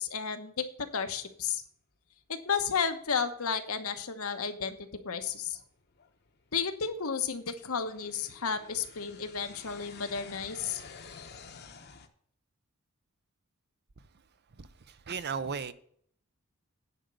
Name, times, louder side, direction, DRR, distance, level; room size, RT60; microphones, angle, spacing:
voice 1, 0.0-1.6 2.3-4.8 5.0-5.6 6.5-10.8, left 6 dB, 75° left, 1.1 m, -32 dB
sound 1, 3.2-3.4 3.9-4.0 4.7-12.1, left 5 dB, 50° left, 1.0 m, -51 dB
voice 2, 14.6-15.7, right 6 dB, 50° right, 0.6 m, -36 dB
10.0 x 5.1 x 8.1 m
head